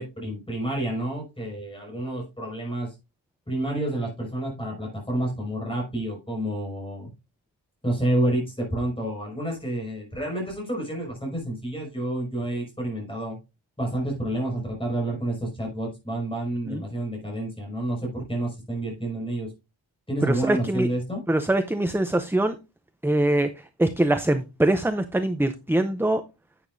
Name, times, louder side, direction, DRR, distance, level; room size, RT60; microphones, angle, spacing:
voice 1, 0.0-3.0 3.5-7.1 7.8-13.4 13.8-19.5 20.1-21.2, right 1 dB, 10° left, -1 dB, 5.5 m, -29 dB
voice 2, 20.2-20.9 21.3-22.6 23.0-23.5 23.8-26.2, right 1 dB, 5° right, 8 dB, 0.5 m, -23 dB
11.0 x 8.6 x 2.6 m, 0.27 s
wide cardioid pair, 175°, 46 cm